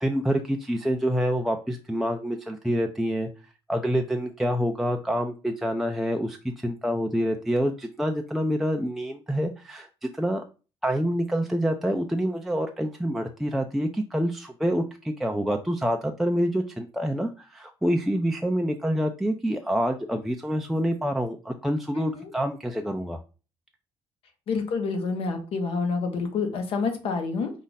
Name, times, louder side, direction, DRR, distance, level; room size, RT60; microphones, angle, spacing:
voice 1, 0.0-3.3 3.7-10.4 10.8-23.2, equal, ahead, 3 dB, 0.4 m, -27 dB
voice 2, 24.5-27.5, left 4 dB, 65° left, 5 dB, 1.2 m, -28 dB
5.2 x 2.4 x 4.0 m, 0.33 s
cardioid pair, 120°, 10 cm